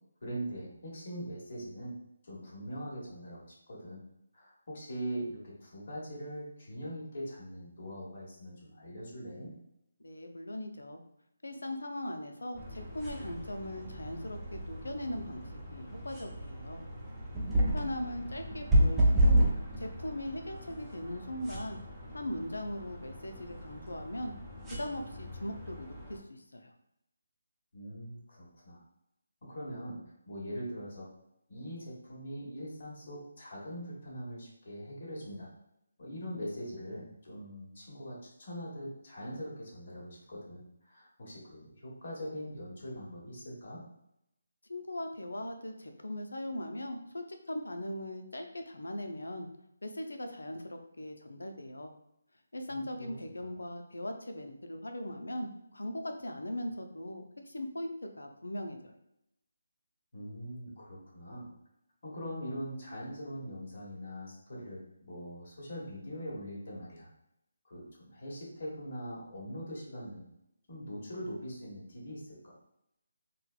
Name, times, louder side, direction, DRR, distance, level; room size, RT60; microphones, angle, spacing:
voice 1, 0.2-2.0 2.2-4.0 4.3-9.5 17.5-17.9 18.2-18.4 27.7-28.8 29.4-31.1 31.5-35.5 36.0-43.8 52.7-53.1 60.1-61.5 62.0-67.1 67.6-70.2 70.7-72.5, equal, 55° left, -4 dB, 1.3 m, -42 dB
voice 2, 10.0-11.0 11.4-16.8 17.6-19.5 19.8-21.8 22.1-24.3 24.7-26.7 44.7-49.5 49.8-51.9 52.5-58.9, left 1 dB, 85° left, 5 dB, 0.5 m, -39 dB
sound 1, 12.5-26.2, right 1 dB, 5° right, 0.7 m, -32 dB
3.9 x 2.1 x 2.4 m, 0.81 s
figure-of-eight pair, 155°, 0 cm